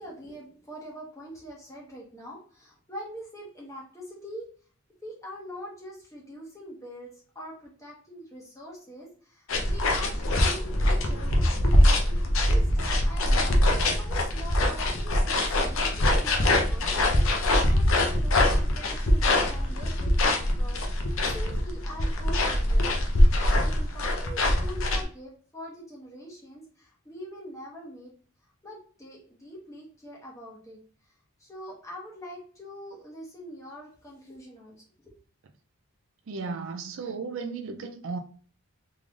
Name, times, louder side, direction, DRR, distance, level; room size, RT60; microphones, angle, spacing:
voice 1, 0.0-4.5 5.0-12.0 12.4-20.8 21.3-23.0 23.5-28.1 28.6-31.1 31.4-34.8 35.0-35.1, equal, 15° left, 1.1 m, -44 dB
sound 1, 9.5-25.0, left 1 dB, 60° left, 0.7 m, -23 dB
voice 2, 36.3-38.2, right 4 dB, 60° right, 0.4 m, -34 dB
3.7 x 3.2 x 2.4 m
head